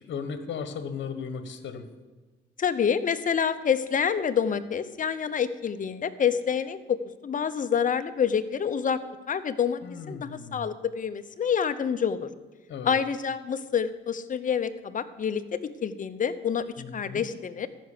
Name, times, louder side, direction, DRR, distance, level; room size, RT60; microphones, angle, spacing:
voice 1, 0.0-1.9 9.8-10.7 12.7-12.9 16.8-17.3, left 6 dB, 65° left, 9 dB, 1.3 m, -36 dB
voice 2, 2.6-9.0 9.3-9.8 10.1-12.3 12.8-17.7, left 7 dB, 40° left, 11 dB, 0.8 m, -27 dB
14.0 x 6.0 x 6.7 m, 1.3 s
cardioid pair, 90°, 20 cm